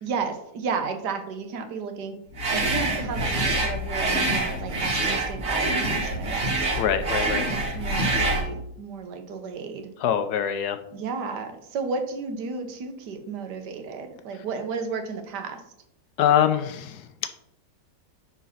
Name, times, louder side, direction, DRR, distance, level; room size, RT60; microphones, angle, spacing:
voice 1, 0.0-6.6 7.7-9.9 10.9-15.6, right 5 dB, 70° right, 7 dB, 1.5 m, -33 dB
sound 1, 2.4-8.5, right 2 dB, 40° right, 1.6 m, -25 dB
voice 2, 6.8-7.5 10.0-10.8 16.2-17.3, left 9 dB, 70° left, 9 dB, 1.0 m, -24 dB
5.6 x 4.9 x 5.6 m, 0.76 s
omnidirectional pair, 1.9 m